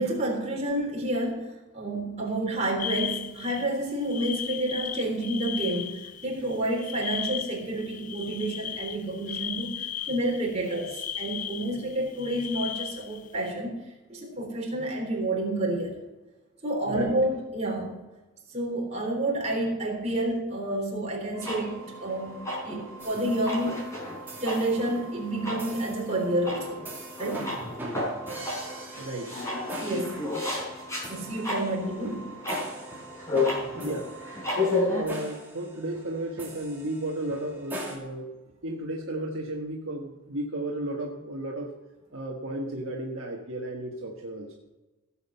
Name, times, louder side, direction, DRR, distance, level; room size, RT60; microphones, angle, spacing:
voice 1, 0.0-9.7 10.1-13.7 14.1-16.0 16.6-17.9 18.5-22.4 22.6-23.8 24.4-26.9 27.2-27.5 29.8-30.2 31.1-32.3, right 1 dB, 30° right, -2 dB, 3.7 m, -29 dB
sound 1, 2.8-13.5, left 9 dB, 35° left, 0.4 m, -36 dB
sound 2, 21.3-35.0, left 2 dB, 15° left, 4.2 m, -33 dB
sound 3, 23.0-23.8 24.3-24.9 25.6-26.2 26.8-38.0, right 1 dB, 10° right, 2.6 m, -42 dB
voice 2, 29.0-29.4 33.8-34.1 34.5-38.4 38.6-41.7 42.1-44.6, right 1 dB, 65° right, -1 dB, 1.5 m, -34 dB
17.0 x 7.4 x 5.6 m, 1.1 s
head